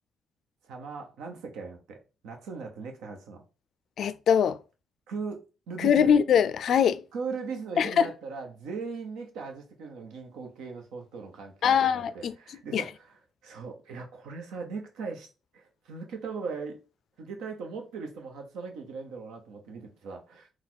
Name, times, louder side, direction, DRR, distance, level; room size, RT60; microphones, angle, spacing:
voice 1, 0.6-2.0 2.2-3.4 5.1-6.1 7.1-13.2 13.4-15.3 15.5-16.8 17.2-20.5, right 4 dB, 90° right, 0.9 m, -39 dB
voice 2, 4.0-4.6 5.8-7.0 7.8-8.1 11.6-12.3 12.7-12.8, left 8 dB, 65° left, 0.3 m, -22 dB
4.1 x 2.3 x 4.5 m
cardioid pair, 90°, 0 cm